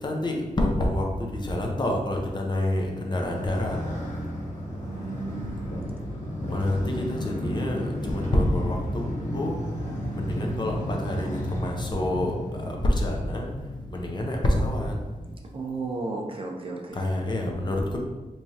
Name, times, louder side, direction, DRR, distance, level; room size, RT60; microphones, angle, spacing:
voice 1, 0.0-3.8 5.4-5.6 6.5-9.6 10.1-13.5 13.9-14.9 16.9-18.0, left 1 dB, 30° left, 0 dB, 0.5 m, -27 dB
Motorcycle, 3.1-15.3, equal, 65° left, 1.2 m, -33 dB
voice 2, 4.8-5.9 15.5-17.0, right 3 dB, 40° right, 0 dB, 0.4 m, -34 dB
3.5 x 3.1 x 2.7 m, 1.2 s
wide cardioid pair, 140°, 14 cm